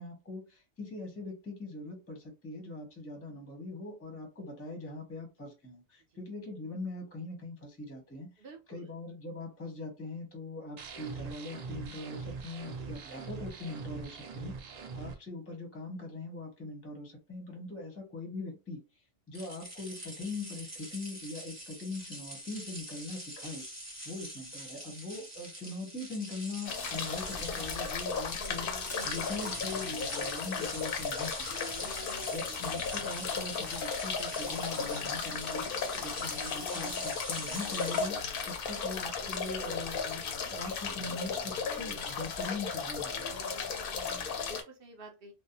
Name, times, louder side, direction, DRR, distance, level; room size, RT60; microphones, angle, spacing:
voice 1, 0.0-8.3 8.7-18.8 19.3-23.6 24.0-31.4 31.8-35.7 36.0-40.2 40.5-43.4, left 2 dB, 15° left, 0.6 m, -41 dB
voice 2, 8.4-8.9 12.7-13.1 17.8-17.9 32.5-32.7 35.9-36.1 43.9-45.3, right 2 dB, 55° right, 0.8 m, -51 dB
sound 1, 10.8-15.1, right 5 dB, 75° right, 0.3 m, -42 dB
sound 2, 19.3-38.1, equal, 15° right, 1.0 m, -44 dB
sound 3, 26.7-44.6, left 5 dB, 60° left, 0.6 m, -35 dB
2.6 x 2.0 x 2.7 m
omnidirectional pair, 1.3 m